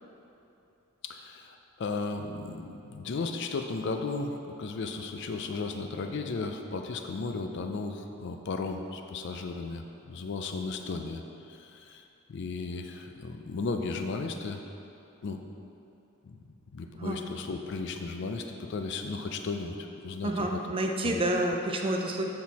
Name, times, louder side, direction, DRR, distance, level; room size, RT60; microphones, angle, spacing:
voice 1, 1.0-11.2 11.5-14.6 15.2-15.4 16.2-16.4 16.7-20.6 21.0-21.2, left 3 dB, 55° left, 5 dB, 0.4 m, -35 dB
voice 2, 20.2-22.2, right 1 dB, 25° right, 2 dB, 0.4 m, -29 dB
7.6 x 4.4 x 4.1 m, 2.8 s
head